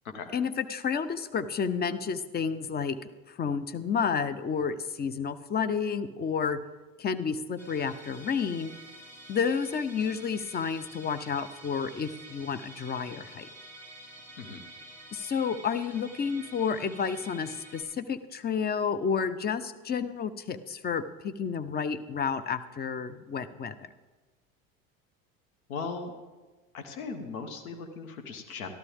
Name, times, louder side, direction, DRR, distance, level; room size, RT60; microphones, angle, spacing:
voice 1, 0.3-3.0 3.3-6.6 7.0-8.8 9.3-13.5 15.1-23.9, left 6 dB, 25° left, 13 dB, 0.6 m, -30 dB
Musical instrument, 7.6-17.8, right 1 dB, 5° left, 3.3 m, -49 dB
voice 2, 25.7-26.1 26.7-28.7, left 4 dB, 80° left, 6 dB, 1.2 m, -38 dB
13.0 x 12.5 x 3.5 m, 1.3 s
hypercardioid pair, 75°, 42 cm